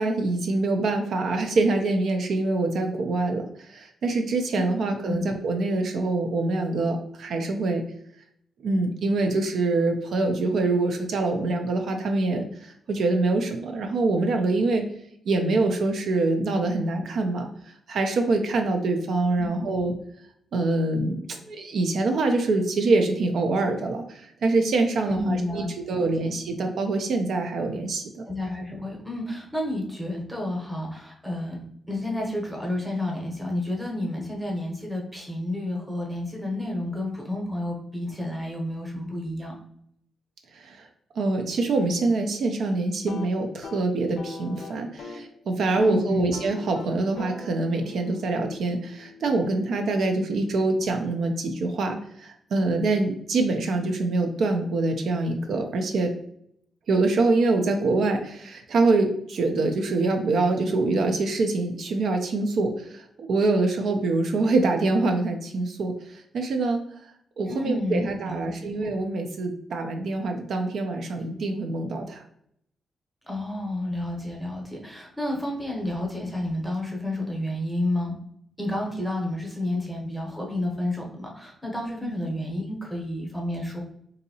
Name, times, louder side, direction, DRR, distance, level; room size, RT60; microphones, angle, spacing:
voice 1, 0.0-7.8 8.6-14.9 15.3-19.9 20.5-28.2 40.5-40.9 41.1-56.1 56.9-66.8 67.4-72.2 82.0-82.1, right 3 dB, 60° right, 4 dB, 0.4 m, -25 dB
voice 2, 25.1-25.7 25.9-26.3 28.2-31.6 31.9-39.5 45.8-46.3 67.5-68.7 73.3-78.2 78.6-83.8, left 1 dB, 5° right, -1 dB, 0.8 m, -30 dB
sound 1, 42.9-45.3 45.6-46.0 46.3-50.2, left 4 dB, 70° left, 0.5 m, -42 dB
3.8 x 2.6 x 2.7 m, 0.71 s
wide cardioid pair, 170°, 0 cm